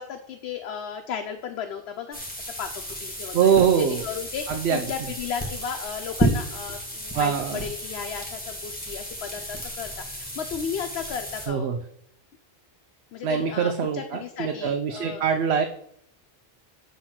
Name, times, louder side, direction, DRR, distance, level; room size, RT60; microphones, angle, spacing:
voice 1, 0.0-2.2 2.6-11.7 13.1-15.2, left 7 dB, 80° left, 5 dB, 0.9 m, -35 dB
sound 1, 2.1-11.5, right 1 dB, 10° left, 1.4 m, -32 dB
voice 2, 3.3-4.0 4.5-4.8 7.1-7.6 11.5-11.8 13.2-15.7, right 7 dB, 85° right, 5 dB, 0.9 m, -23 dB
7.9 x 3.0 x 5.8 m, 0.71 s
omnidirectional pair, 1.1 m